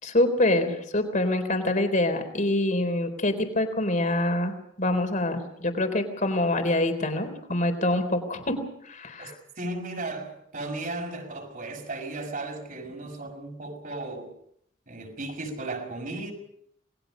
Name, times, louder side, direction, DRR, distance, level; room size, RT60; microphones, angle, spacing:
voice 1, 0.0-9.3, left 1 dB, 40° left, 3.9 m, -25 dB
voice 2, 9.2-14.3 14.9-16.3, right 2 dB, 45° right, 6.0 m, -35 dB
28.5 x 20.5 x 5.2 m
head